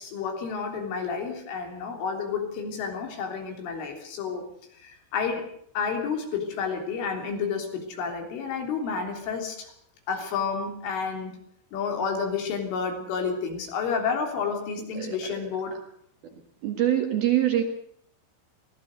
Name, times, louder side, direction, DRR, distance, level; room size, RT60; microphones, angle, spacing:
voice 1, 0.0-4.4 4.8-5.5 5.8-9.7 10.1-11.3 11.7-15.8, left 5 dB, 70° left, 3 dB, 5.9 m, -30 dB
voice 2, 16.6-17.6, right 12 dB, 60° right, 4 dB, 3.0 m, -24 dB
24.5 x 18.0 x 6.5 m, 0.69 s
omnidirectional pair, 6.0 m